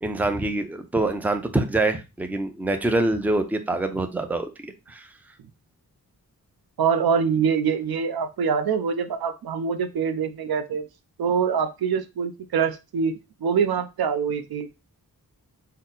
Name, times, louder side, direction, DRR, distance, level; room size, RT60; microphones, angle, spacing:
voice 1, 0.0-4.5 4.9-5.1, right 2 dB, 5° right, 7 dB, 0.5 m, -25 dB
voice 2, 6.8-10.8 11.2-14.7, right 6 dB, 75° right, 11 dB, 0.5 m, -24 dB
4.1 x 2.1 x 3.8 m, 0.26 s
wide cardioid pair, 85°, 37 cm